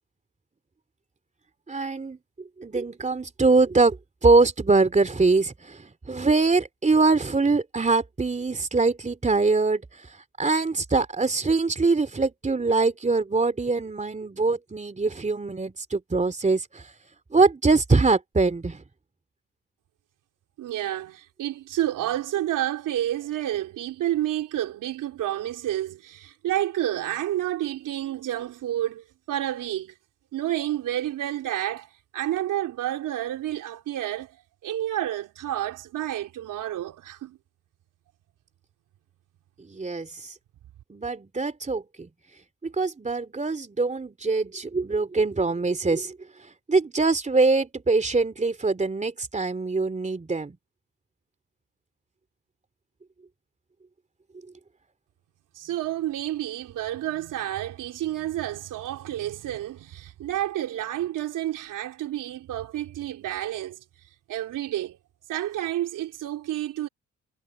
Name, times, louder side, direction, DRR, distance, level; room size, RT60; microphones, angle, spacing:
voice 1, 1.7-2.2 2.6-16.9 17.3-18.8 39.6-40.3 40.9-42.1 42.6-46.2 46.7-50.6, right 3 dB, 20° right, 3.1 m, -23 dB
voice 2, 20.6-29.9 30.3-34.4 34.6-37.4 55.5-63.8 64.3-65.0 65.3-66.9, right 13 dB, 75° right, 4.0 m, -30 dB
supercardioid pair, 65°, 32 cm